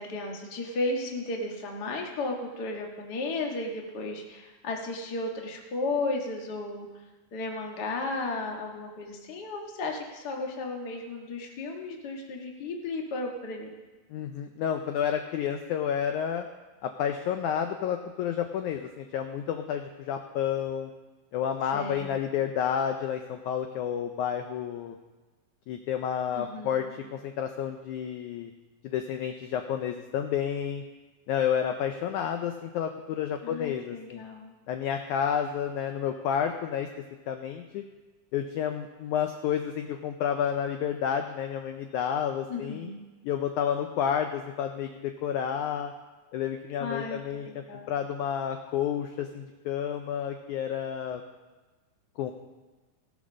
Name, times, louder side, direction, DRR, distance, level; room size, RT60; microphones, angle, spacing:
voice 1, 0.0-6.9 7.3-13.7 21.7-22.2 26.3-26.9 33.4-34.5 42.5-43.0 46.8-47.2 47.4-47.9, left 2 dB, 45° left, 1 dB, 1.3 m, -34 dB
voice 2, 14.1-16.5 16.8-20.9 21.3-25.0 25.7-28.5 28.8-30.8 31.3-34.2 34.7-36.9 37.3-37.8 38.3-42.9 43.2-45.9 46.3-51.2 52.2-52.3, left 8 dB, 80° left, 6 dB, 1.8 m, -30 dB
17.5 x 6.2 x 6.3 m, 1.2 s
omnidirectional pair, 4.2 m